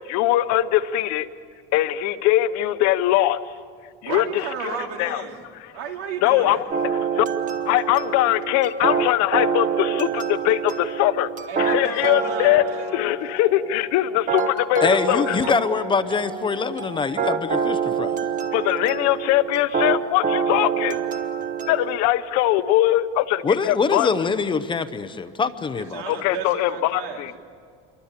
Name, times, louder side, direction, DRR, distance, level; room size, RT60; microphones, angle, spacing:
voice 1, 0.1-1.3 1.7-3.4 4.0-5.2 5.6-5.7 6.2-6.6 6.9-7.3 7.7-11.3 11.6-15.4 18.5-21.0 21.7-24.1 26.1-27.3, left 14 dB, 65° left, 11 dB, 1.0 m, -21 dB
voice 2, 4.0-5.4 5.7-6.7 11.5-12.9 25.8-27.4, right 7 dB, 85° right, 3 dB, 3.0 m, -33 dB
sound 1, 6.7-22.0, right 6 dB, 25° right, 1.3 m, -27 dB
voice 3, 14.8-18.2 23.4-26.0, left 5 dB, 15° left, 11 dB, 0.7 m, -24 dB
27.0 x 23.5 x 8.2 m, 2.1 s
cardioid pair, 170°, 29 cm